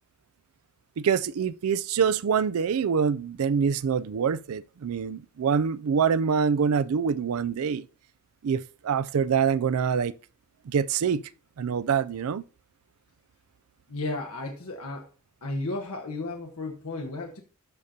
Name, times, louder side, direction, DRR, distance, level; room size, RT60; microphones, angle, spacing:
voice 1, 1.0-7.9 8.4-10.1 10.7-11.2 11.6-12.4, right 6 dB, 75° right, 0.4 m, -25 dB
voice 2, 13.9-15.1 15.4-17.4, left 2 dB, 75° left, 1.2 m, -33 dB
13.5 x 5.1 x 2.8 m
head